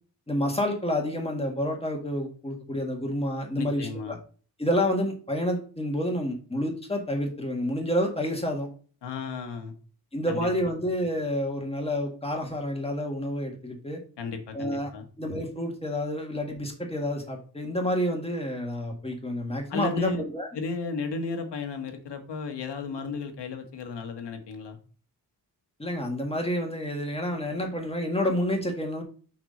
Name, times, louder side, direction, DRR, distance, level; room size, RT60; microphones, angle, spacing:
voice 1, 0.3-4.2 4.6-8.7 10.1-14.0 14.5-14.9 15.2-20.5 25.8-29.0, equal, 15° left, 2 dB, 1.7 m, -29 dB
voice 2, 3.5-4.2 9.0-9.8 10.3-10.5 14.2-15.1 19.7-20.2 20.5-24.8, left 4 dB, 80° left, 6 dB, 1.6 m, -34 dB
6.3 x 5.8 x 3.9 m, 0.40 s
wide cardioid pair, 140°, 41 cm